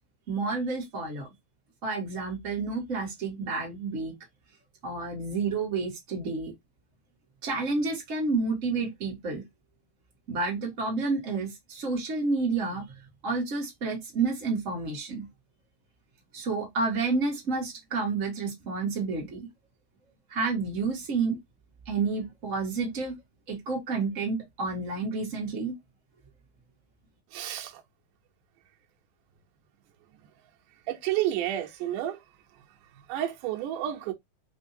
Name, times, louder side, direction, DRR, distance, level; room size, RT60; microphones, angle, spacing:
voice 1, 0.3-1.3 1.8-4.1 4.8-6.5 7.4-9.4 10.3-12.8 13.2-15.3 16.3-19.5 20.3-21.4 21.9-23.1 23.5-25.7, right 4 dB, 35° right, 1.4 m, -30 dB
voice 2, 27.3-27.8 30.9-32.2 33.1-34.1, right 12 dB, 80° right, 2.3 m, -30 dB
5.3 x 2.8 x 2.7 m
omnidirectional pair, 3.8 m